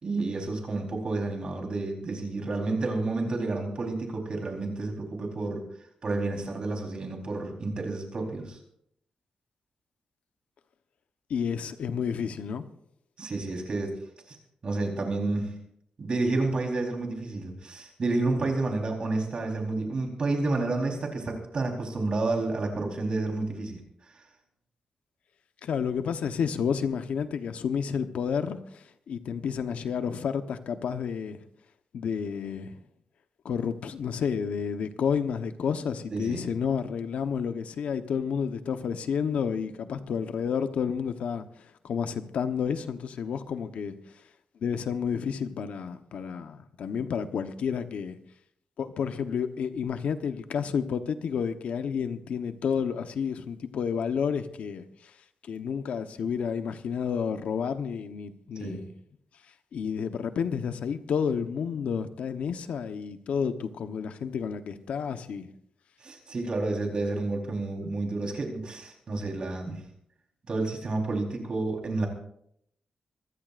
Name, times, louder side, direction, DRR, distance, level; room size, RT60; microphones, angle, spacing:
voice 1, 0.0-5.6 6.0-8.6 13.2-13.9 14.3-14.4 14.6-15.5 16.0-23.8 36.1-36.4 58.6-58.8 66.0-69.8 70.5-72.1, right 2 dB, 45° right, 4.0 m, -30 dB
voice 2, 11.3-12.6 25.6-31.4 31.9-32.8 33.4-44.2 44.6-48.2 48.8-55.2 55.4-58.9 59.7-65.5, left 7 dB, 85° left, 1.0 m, -30 dB
24.5 x 15.5 x 2.6 m
wide cardioid pair, 115°, 2 cm